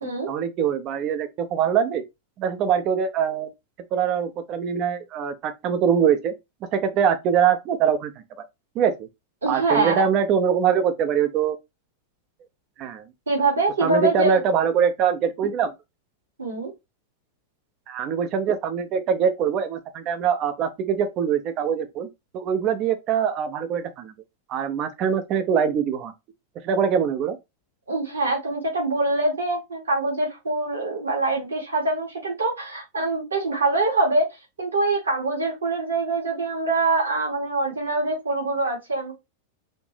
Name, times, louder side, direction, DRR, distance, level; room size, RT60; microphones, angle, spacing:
voice 1, 0.0-2.0 2.4-3.5 3.9-6.3 6.7-8.1 8.8-9.1 9.5-11.6 12.8-13.0 13.8-15.7 17.9-22.1 22.3-24.1 24.5-26.1 26.6-27.4, right 7 dB, 35° right, 0.6 m, -23 dB
voice 2, 9.4-10.0 13.3-14.4 16.4-16.7 27.9-34.3 34.6-39.1, right 2 dB, 75° right, 1.9 m, -24 dB
4.3 x 2.8 x 3.2 m
figure-of-eight pair, 90°, 0 cm